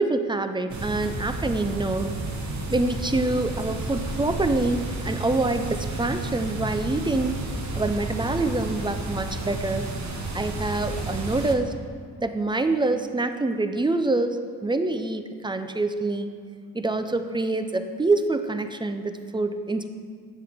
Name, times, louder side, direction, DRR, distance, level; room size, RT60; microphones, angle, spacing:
voice 1, 0.0-2.1 2.7-7.4 7.7-9.9 10.3-11.7 12.2-16.3 16.7-19.9, right 2 dB, 10° right, 8 dB, 0.6 m, -26 dB
sound 1, 0.7-11.6, right 2 dB, 45° right, 1.2 m, -31 dB
12.5 x 7.8 x 3.6 m, 2.2 s
cardioid pair, 95°, 40 cm